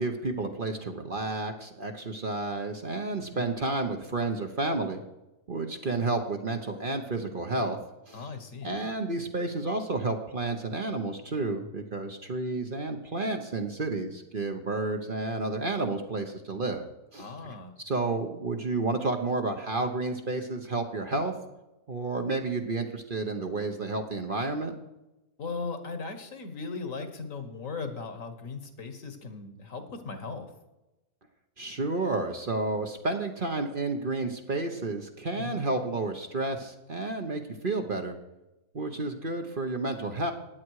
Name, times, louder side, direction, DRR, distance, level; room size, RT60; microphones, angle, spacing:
voice 1, 0.0-5.0 5.5-7.8 8.1-8.2 8.6-16.8 17.1-17.5 17.8-21.3 21.9-24.7 31.6-38.1 38.7-40.3, right 2 dB, 40° right, 5 dB, 1.1 m, -31 dB
voice 2, 8.1-8.8 17.2-17.7 25.4-30.5 35.3-35.6, left 4 dB, 60° left, 8 dB, 1.8 m, -38 dB
16.5 x 9.9 x 4.8 m, 0.99 s
omnidirectional pair, 1.6 m